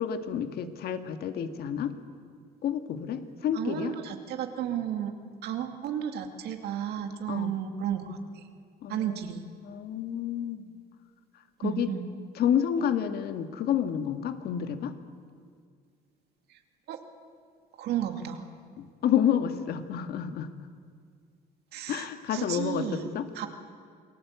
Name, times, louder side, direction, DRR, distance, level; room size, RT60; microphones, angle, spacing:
voice 1, 0.0-1.9 2.6-4.0 7.3-7.5 8.8-9.3 9.6-10.8 11.6-11.9 12.4-14.9 18.8-20.5 21.9-23.3, left 9 dB, 70° left, 8 dB, 1.8 m, -29 dB
voice 2, 3.5-5.1 5.4-8.5 8.9-9.4 11.6-12.1 16.5-16.6 16.9-17.0 17.7-18.5 21.7-23.1 23.3-23.5, right 9 dB, 75° right, 5 dB, 2.5 m, -33 dB
28.0 x 19.0 x 8.3 m, 2.1 s
cardioid pair, 110°, 17 cm